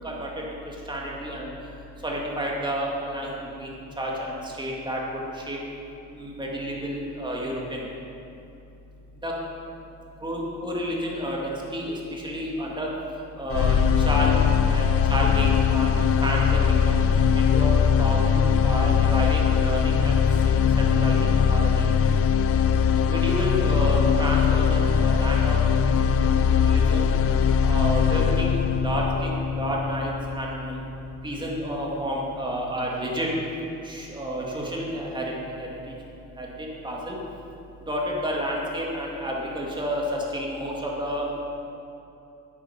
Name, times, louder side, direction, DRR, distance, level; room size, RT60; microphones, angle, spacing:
voice 1, 0.9-1.5 2.0-5.0 5.5-5.6 6.1-7.8 9.2-9.3 10.2-12.9 13.4-13.8 14.1-15.9 16.2-17.0 17.3-20.2 20.8-21.7 23.1-25.6 26.2-26.3 26.6-27.0 27.6-30.8 31.2-33.3 33.8-35.3 35.6-35.7 36.4-36.5 36.8-37.2 37.9-40.0 40.3-41.3, equal, 15° right, -3 dB, 2.1 m, -30 dB
sound 1, 13.5-31.5, left 7 dB, 45° left, 0.5 m, -21 dB
9.2 x 8.3 x 5.6 m, 2.8 s
cardioid pair, 115°, 32 cm